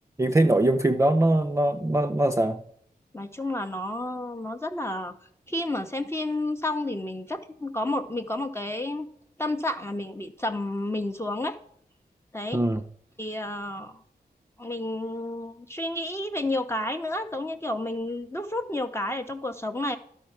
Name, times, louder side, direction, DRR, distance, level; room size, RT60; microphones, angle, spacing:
voice 1, 0.2-2.6 12.5-12.8, right 1 dB, 20° right, 5 dB, 0.5 m, -22 dB
voice 2, 3.1-5.1 5.5-9.1 9.4-11.6 12.3-12.6 13.2-14.0 14.6-20.0, left 1 dB, 15° left, 4 dB, 0.7 m, -31 dB
12.0 x 5.5 x 5.8 m, 0.66 s
wide cardioid pair, 80°, 17 cm